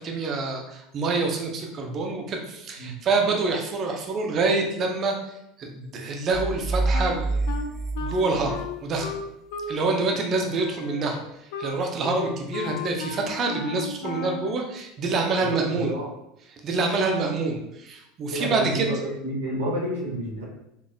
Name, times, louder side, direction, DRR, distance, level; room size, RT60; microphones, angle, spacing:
voice 1, 0.0-5.3 5.6-7.5 8.0-9.1 9.7-11.2 11.6-15.9 16.6-18.9, right 3 dB, 40° right, 2 dB, 0.8 m, -26 dB
sound 1, 6.3-9.1, right 3 dB, 5° right, 0.4 m, -28 dB
Wind instrument woodwind instrument, 6.9-9.8 10.1-14.6, left 5 dB, 65° left, 0.4 m, -35 dB
voice 2, 15.4-16.1 18.3-20.4, equal, 90° right, -7 dB, 1.4 m, -29 dB
4.2 x 3.4 x 2.3 m, 0.83 s
hypercardioid pair, 80°, 0 cm